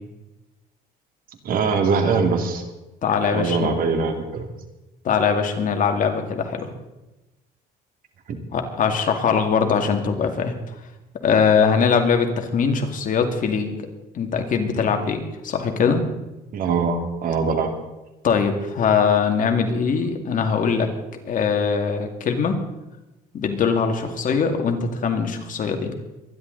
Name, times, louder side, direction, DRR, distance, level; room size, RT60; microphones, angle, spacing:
voice 1, 1.4-2.6 3.3-4.5 8.3-8.4 16.5-17.7, right 5 dB, 60° right, 5 dB, 2.5 m, -22 dB
voice 2, 3.0-3.7 5.0-6.7 8.5-10.5 11.2-13.8 14.1-16.0 18.2-20.9 21.3-22.6 23.3-25.9, left 6 dB, 50° left, 5 dB, 2.2 m, -21 dB
24.0 x 11.0 x 4.0 m, 1.0 s
cardioid pair, 110°, 17 cm